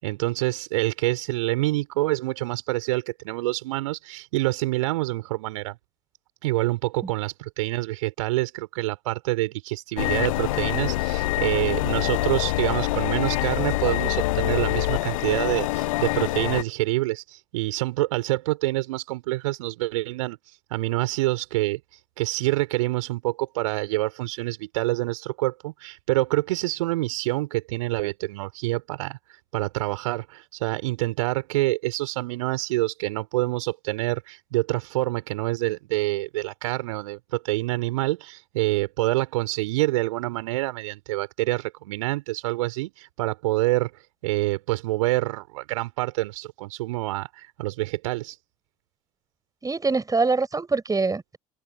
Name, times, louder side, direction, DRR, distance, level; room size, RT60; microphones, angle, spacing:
voice 1, 0.0-5.8 6.4-20.4 20.7-21.8 22.2-29.2 29.5-43.9 44.2-48.4, right 19 dB, 70° right, 4.8 m, -26 dB
sound 1, 10.0-16.6, left 18 dB, 65° left, 1.0 m, -25 dB
voice 2, 49.6-51.4, right 4 dB, 20° right, 7.4 m, -24 dB
open air
figure-of-eight pair, 60°, 18 cm